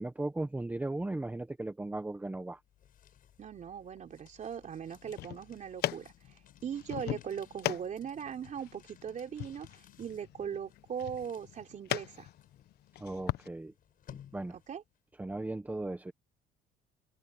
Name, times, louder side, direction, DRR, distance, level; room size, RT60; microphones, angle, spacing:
voice 1, 0.0-2.6 13.0-13.7 14.1-14.6 15.2-16.1, right 2 dB, 10° right, 1.2 m, -37 dB
sound 1, 2.4-15.0, left 10 dB, 55° left, 6.6 m, -59 dB
voice 2, 3.4-6.1 6.6-12.3 14.7-14.8, right 8 dB, 45° right, 3.8 m, -39 dB
sound 2, 4.9-13.5, left 14 dB, 70° left, 1.0 m, -40 dB
cardioid pair, 110°, 17 cm